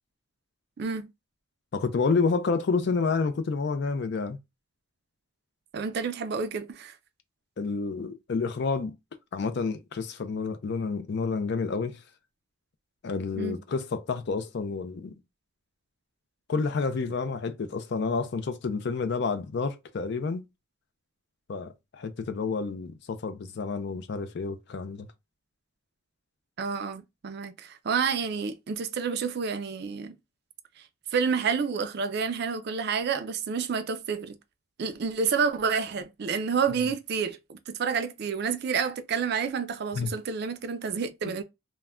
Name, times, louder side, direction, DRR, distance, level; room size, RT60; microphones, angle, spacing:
voice 1, 0.8-1.1 5.7-6.9 13.3-13.6 26.6-30.1 30.8-30.9 31.1-34.4 34.8-41.4, right 6 dB, 50° right, 0.4 m, -29 dB
voice 2, 1.7-4.4 7.6-8.9 9.3-12.0 13.0-15.2 16.5-20.4 21.5-25.1 40.0-40.1, left 4 dB, 55° left, 0.4 m, -29 dB
2.2 x 2.1 x 3.5 m
head